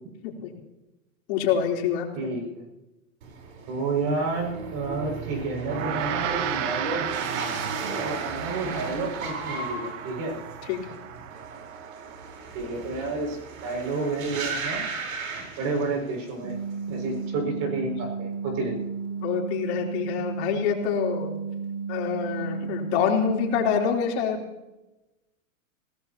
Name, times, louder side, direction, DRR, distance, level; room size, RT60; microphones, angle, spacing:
voice 1, 1.3-2.1 10.7-10.8 19.2-21.3 21.9-24.4, left 8 dB, 50° left, 0 dB, 3.9 m, -26 dB
voice 2, 2.1-2.6 3.7-7.1 7.9-10.3 12.5-14.8 15.6-16.6 16.9-18.8, right 3 dB, 40° right, 1 dB, 6.5 m, -30 dB
sound 1, 3.2-16.3 16.6-17.2, right 4 dB, 75° right, 4.6 m, -36 dB
Gong, 5.7-15.2, right 9 dB, 60° right, 1.5 m, -35 dB
sound 2, 16.4-23.9, right 5 dB, 90° right, 4.1 m, -33 dB
25.0 x 18.0 x 3.0 m, 0.99 s
hypercardioid pair, 140°, 41 cm